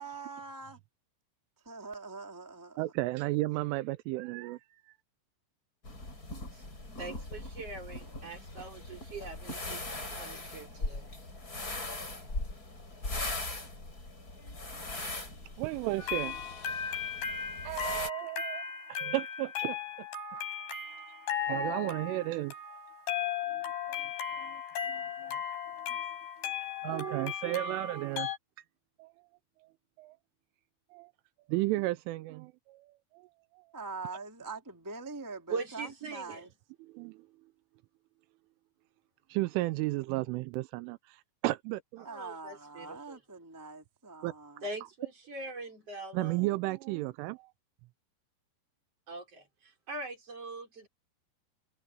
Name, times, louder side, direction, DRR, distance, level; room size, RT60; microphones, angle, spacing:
voice 1, 0.0-0.8 1.6-2.8 33.7-36.5 42.0-44.6, right 4 dB, 5° right, 1.6 m, -43 dB
voice 2, 2.8-4.6 15.6-16.4 17.6-18.6 18.9-19.8 21.5-22.5 23.5-24.6 24.9-25.4 25.6-26.1 26.8-28.3 29.0-29.1 30.0-30.2 30.9-31.1 31.5-33.3 33.5-33.6 36.8-37.3 39.3-41.2 41.4-42.1 44.2-44.3 46.1-47.5, right 19 dB, 85° right, 3.1 m, -34 dB
sound 1, 5.8-18.1, left 2 dB, 20° left, 5.6 m, -40 dB
voice 3, 7.0-11.1 35.5-36.5 42.0-43.2 44.6-46.4 49.1-50.9, right 3 dB, 30° right, 5.6 m, -42 dB
sound 2, 16.0-28.4, left 8 dB, 55° left, 7.1 m, -36 dB
omnidirectional pair, 5.7 m